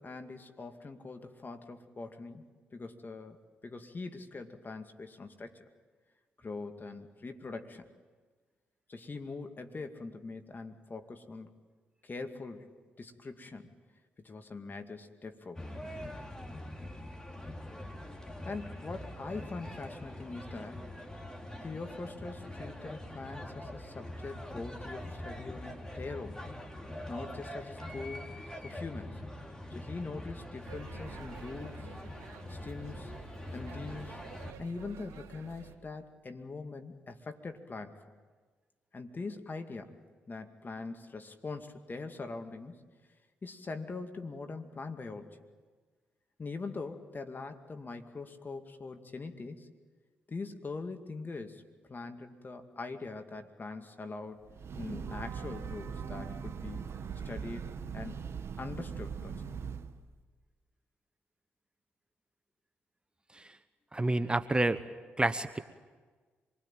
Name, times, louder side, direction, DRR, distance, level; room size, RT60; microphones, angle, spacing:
voice 1, 0.0-2.4 2.7-3.4 3.6-5.6 6.4-7.9 8.9-11.5 12.0-12.7 13.0-13.7 14.2-15.7 18.4-20.9 21.6-26.4 27.1-28.3 28.6-29.2 29.7-31.9 32.5-33.1 33.5-34.2 34.6-38.0 38.9-40.0 40.3-42.8 43.4-45.4 46.4-49.7 50.3-51.6 51.9-54.5 54.7-56.9 57.2-57.7 57.9-58.2 58.6-59.3, left 3 dB, 40° left, 6 dB, 2.3 m, -42 dB
sound 1, 15.6-34.5, left 1 dB, 15° left, 3.4 m, -43 dB
sound 2, 30.6-35.8, right 7 dB, 75° right, 2.4 m, -51 dB
Breathing / Train, 54.4-60.0, right 6 dB, 55° right, 1.3 m, -40 dB
voice 2, 63.9-64.8 65.2-65.6, right 2 dB, 20° right, 11 dB, 1.1 m, -29 dB
26.0 x 20.0 x 9.1 m, 1.4 s
hypercardioid pair, 45°, 5 cm